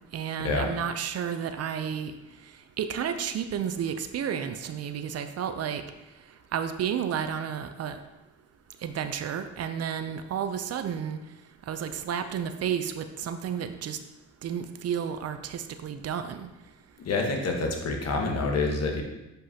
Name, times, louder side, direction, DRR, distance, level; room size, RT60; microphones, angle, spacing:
voice 1, 0.1-2.1 2.8-5.8 6.5-8.0 8.8-11.2 11.7-14.0 14.4-16.5, right 8 dB, 55° right, 9 dB, 0.5 m, -31 dB
voice 2, 17.0-19.0, left 3 dB, 55° left, 1 dB, 1.3 m, -27 dB
7.4 x 5.4 x 2.8 m, 1.0 s
cardioid pair, 90°, 30 cm